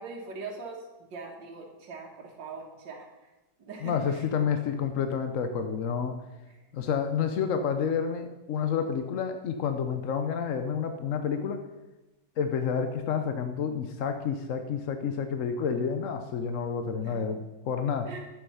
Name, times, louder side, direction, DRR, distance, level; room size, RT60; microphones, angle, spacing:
voice 1, 0.0-3.3 3.6-4.3 6.5-6.6 17.0-17.3 18.1-18.2, right 4 dB, 80° right, -1 dB, 2.1 m, -42 dB
voice 2, 3.8-6.2 6.7-11.6 12.4-18.1, left 6 dB, 55° left, 7 dB, 0.9 m, -29 dB
11.5 x 8.0 x 5.6 m, 1.0 s
omnidirectional pair, 1.9 m